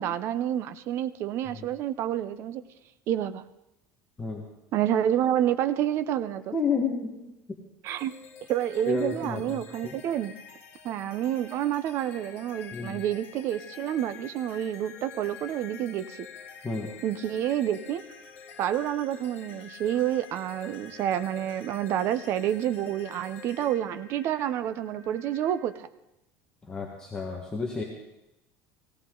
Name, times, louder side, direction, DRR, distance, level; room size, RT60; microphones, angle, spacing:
voice 1, 0.0-2.6 3.1-3.4 4.7-6.5 7.8-8.1 8.5-10.3 10.8-16.3 17.0-18.0 18.6-25.9, right 11 dB, 45° right, 12 dB, 0.6 m, -28 dB
voice 2, 6.5-7.2 8.9-9.9 12.7-13.0 16.6-16.9 26.7-27.8, left 4 dB, 10° left, -2 dB, 1.5 m, -31 dB
sound 1, 7.9-25.5, left 6 dB, 40° left, 1.7 m, -47 dB
17.0 x 17.0 x 3.9 m, 0.93 s
cardioid pair, 165°, 6 cm